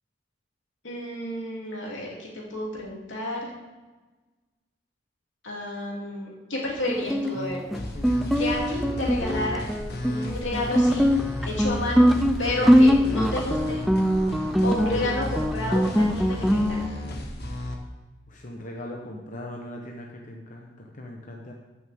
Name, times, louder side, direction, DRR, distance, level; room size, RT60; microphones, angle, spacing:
voice 1, 0.8-3.5 5.4-7.6 8.4-9.7 10.1-11.1 11.4-12.1 12.4-13.8 14.6-16.8, left 1 dB, 85° left, -3 dB, 2.9 m, -31 dB
Guitar, 6.9-16.9, equal, ahead, 0.4 m, -22 dB
sound 1, 7.7-17.7, left 1 dB, 60° left, 1.3 m, -34 dB
voice 2, 7.9-8.3 11.4-11.7 12.6-12.7 14.9-15.1 18.3-21.5, left 1 dB, 45° left, 0 dB, 1.0 m, -39 dB
14.0 x 6.4 x 3.6 m, 1.2 s
head